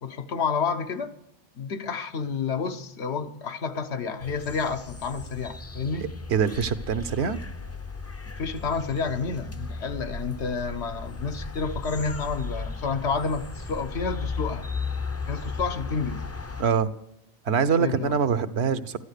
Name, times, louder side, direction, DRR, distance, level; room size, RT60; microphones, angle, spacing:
voice 1, 0.0-1.1 1.5-6.1 8.2-14.7 15.3-16.2 17.8-18.2, left 5 dB, 85° left, 1.3 m, -30 dB
sound 1, 4.2-16.6, left 3 dB, 20° left, 0.4 m, -36 dB
voice 2, 6.3-7.4 16.6-16.9 17.4-19.0, right 6 dB, 80° right, 1.1 m, -24 dB
14.0 x 11.0 x 6.5 m
omnidirectional pair, 1.1 m